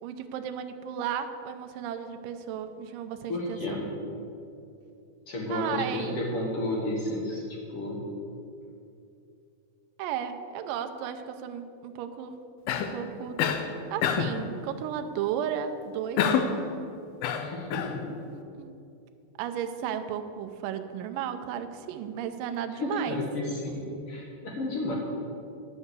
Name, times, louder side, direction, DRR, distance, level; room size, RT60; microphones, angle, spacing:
voice 1, 0.0-3.6 5.5-6.2 10.0-12.3 12.9-13.4 13.9-16.4 18.3-18.8 19.4-23.2, right 9 dB, 80° right, 7 dB, 2.1 m, -34 dB
voice 2, 3.3-3.9 5.3-8.0 17.3-18.1 22.7-24.9, left 1 dB, 60° left, -2 dB, 1.6 m, -32 dB
Cough, 12.7-13.0 13.4-13.7 14.0-14.4 16.2-16.6 17.2-18.0, left 7 dB, 85° left, 2.6 m, -26 dB
10.5 x 5.6 x 8.0 m, 2.6 s
omnidirectional pair, 4.3 m